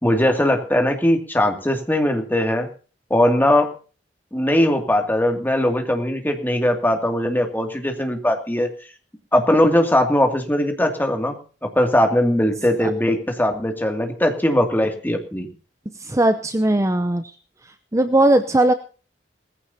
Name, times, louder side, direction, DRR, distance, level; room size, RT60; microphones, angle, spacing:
voice 1, 0.0-2.7 3.1-3.7 4.3-8.7 9.3-15.5, left 1 dB, 10° left, 4 dB, 2.4 m, -20 dB
voice 2, 16.0-17.3 17.9-18.7, right 1 dB, 15° right, 9 dB, 0.7 m, -18 dB
19.5 x 15.5 x 2.8 m, 0.38 s
head